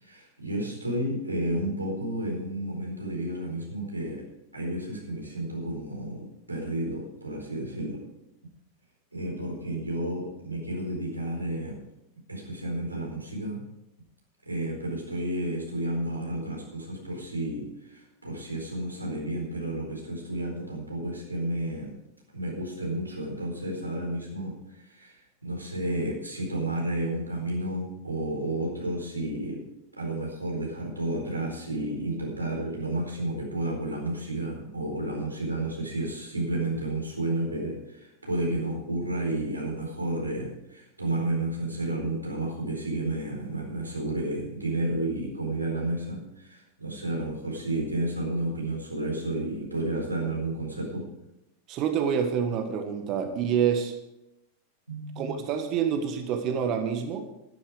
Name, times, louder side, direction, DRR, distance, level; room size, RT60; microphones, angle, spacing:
voice 1, 0.0-4.2 4.5-8.0 9.1-11.8 12.3-13.6 14.5-21.9 22.3-25.1 25.4-29.6 30.0-51.0 54.9-55.3, right 1 dB, 85° right, -1 dB, 4.4 m, -31 dB
voice 2, 51.7-53.9 55.2-57.2, right 7 dB, 40° right, 7 dB, 1.5 m, -27 dB
12.5 x 12.0 x 4.9 m, 0.86 s
figure-of-eight pair, 90°, 0 cm